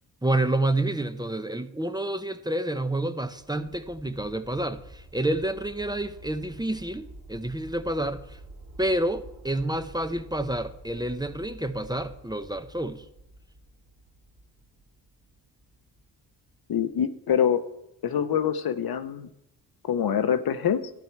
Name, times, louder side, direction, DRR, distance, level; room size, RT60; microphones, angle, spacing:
voice 1, 0.2-8.2 8.8-13.0, right 1 dB, 10° right, 10 dB, 0.8 m, -29 dB
sound 1, 3.3-16.0 16.5-16.6, right 1 dB, 55° right, 2.7 m, -48 dB
voice 2, 16.7-17.6 18.0-19.3 19.8-20.9, left 8 dB, 60° left, 11 dB, 0.9 m, -25 dB
12.0 x 8.8 x 4.6 m, 0.84 s
supercardioid pair, 50°, 41 cm